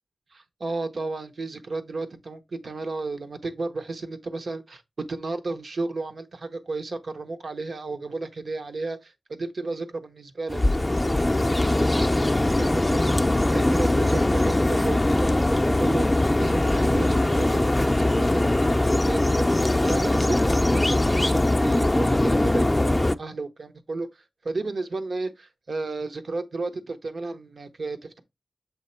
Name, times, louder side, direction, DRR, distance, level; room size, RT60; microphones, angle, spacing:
voice 1, 0.3-4.8 5.1-28.2, right 3 dB, 80° right, 0.8 m, -33 dB
sound 1, 10.5-23.2, left 1 dB, 25° left, 0.4 m, -21 dB
7.3 x 3.1 x 4.3 m
wide cardioid pair, 60°, 0 cm